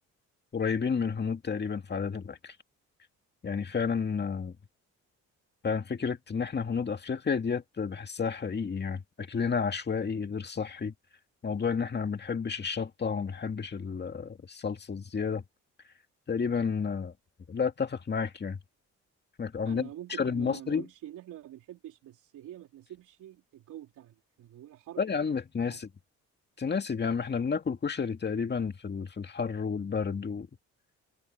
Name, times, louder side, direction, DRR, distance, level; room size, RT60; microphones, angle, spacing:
voice 1, 0.5-2.5 3.4-4.5 5.6-10.9 11.4-15.4 16.3-17.1 17.5-18.6 19.4-19.9 20.2-20.8 25.0-25.9 26.6-30.5, left 5 dB, 35° left, 2.2 m, -31 dB
voice 2, 19.6-25.0 25.7-25.8, right 12 dB, 80° right, 3.6 m, -46 dB
cardioid pair, 90°, 30 cm